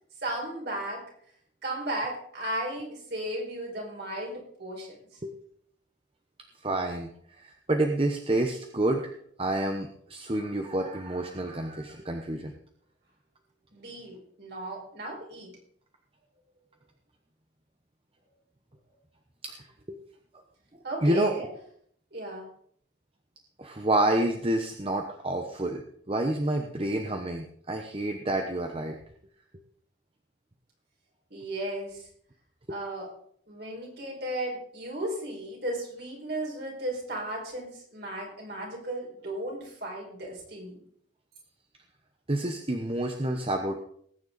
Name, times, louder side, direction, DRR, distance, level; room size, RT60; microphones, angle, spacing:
voice 1, 0.2-1.0 1.6-5.2 13.7-15.5 20.8-21.5 22.1-22.5 31.3-32.1 32.7-33.1 33.5-40.8, right 1 dB, 55° right, -1 dB, 5.5 m, -35 dB
voice 2, 6.6-9.1 9.4-12.5 19.4-20.0 21.0-21.3 23.6-29.0 32.7-32.8 42.3-43.8, right 1 dB, 30° right, 4 dB, 1.0 m, -29 dB
19.5 x 9.4 x 4.1 m, 0.64 s
head